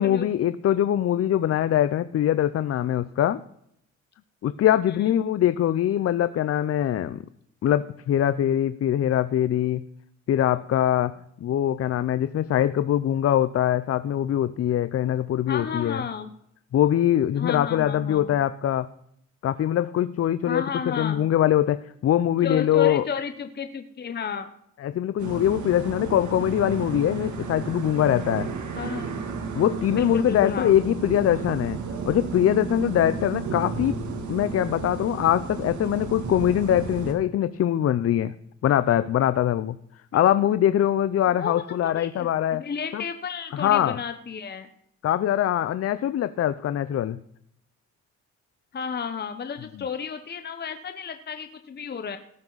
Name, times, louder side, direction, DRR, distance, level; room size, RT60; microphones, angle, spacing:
voice 1, 0.0-3.4 4.4-7.2 7.6-9.8 10.3-11.1 11.4-16.0 16.7-18.9 19.4-23.0 24.8-28.5 29.5-31.8 32.1-33.9 34.3-38.3 38.6-39.8 40.1-42.6 42.9-43.0 43.5-44.0 45.0-47.2, left 11 dB, 50° left, 14 dB, 0.6 m, -23 dB
voice 2, 15.5-16.3 17.4-18.4 20.4-21.2 22.4-24.5 28.7-29.2 29.9-30.7 41.4-44.7 48.7-52.2, left 6 dB, 35° left, 8 dB, 1.0 m, -32 dB
sound 1, 25.2-37.1, right 4 dB, 70° right, 2.6 m, -33 dB
18.0 x 9.6 x 4.0 m, 0.73 s
cardioid pair, 90°, 30 cm